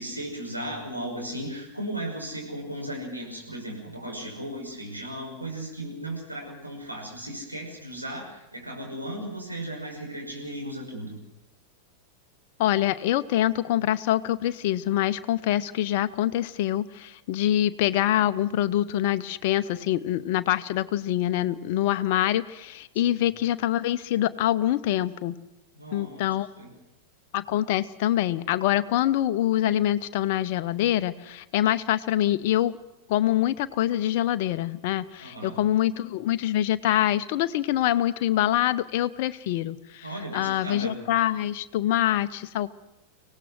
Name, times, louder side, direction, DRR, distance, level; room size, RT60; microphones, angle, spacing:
voice 1, 0.0-11.2 23.0-23.2 25.8-26.7 35.2-35.6 40.0-40.9, right 1 dB, 90° right, -2 dB, 5.9 m, -36 dB
voice 2, 12.6-25.3 25.9-26.5 27.3-32.7 33.1-42.7, left 13 dB, 50° left, 13 dB, 0.8 m, -25 dB
25.0 x 17.5 x 6.3 m, 0.94 s
figure-of-eight pair, 90°, 0 cm